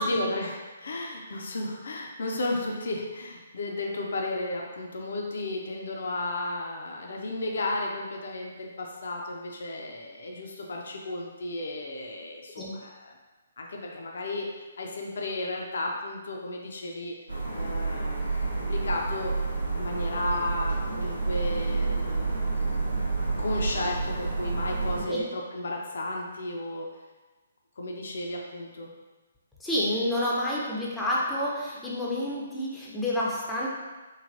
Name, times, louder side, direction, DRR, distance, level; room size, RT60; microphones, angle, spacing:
voice 1, 0.0-13.2 13.6-17.1 17.5-19.3 19.7-22.8 23.4-26.9 27.8-28.9, left 2 dB, 60° left, 0 dB, 0.4 m, -33 dB
sound 1, 17.3-25.0, right 3 dB, 90° right, 0.7 m, -29 dB
voice 2, 29.6-33.7, left 1 dB, 5° left, -6 dB, 0.5 m, -29 dB
3.1 x 2.4 x 2.5 m, 1.2 s
figure-of-eight pair, 130°, 0 cm